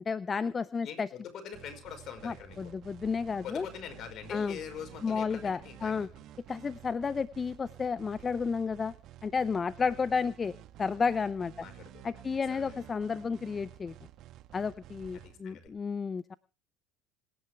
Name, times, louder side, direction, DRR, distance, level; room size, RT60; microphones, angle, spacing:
voice 1, 0.1-1.1 2.2-3.7 4.3-4.6 5.0-6.1 6.5-8.9 9.2-11.5 12.0-13.9 14.5-16.3, left 5 dB, 30° left, 17 dB, 0.6 m, -32 dB
voice 2, 0.8-2.7 3.4-6.1 11.6-12.9 15.1-15.7, left 8 dB, 50° left, 7 dB, 5.2 m, -44 dB
sound 1, 1.5-15.7, right 13 dB, 55° right, 1.3 m, -52 dB
27.0 x 10.5 x 3.5 m, 0.34 s
hypercardioid pair, 75°, 0 cm